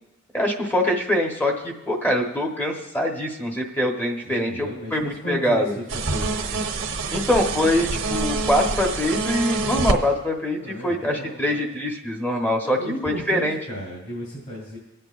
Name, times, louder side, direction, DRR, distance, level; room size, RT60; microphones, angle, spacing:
voice 1, 0.3-5.0 5.3-5.7 7.1-12.8 13.0-13.6, left 1 dB, 10° left, 1 dB, 1.1 m, -23 dB
voice 2, 4.2-6.7 10.6-11.6 12.6-14.8, equal, 45° left, -6 dB, 3.5 m, -35 dB
sound 1, 5.9-10.0, right 3 dB, 65° right, 1.0 m, -26 dB
25.0 x 8.8 x 2.5 m, 0.98 s
head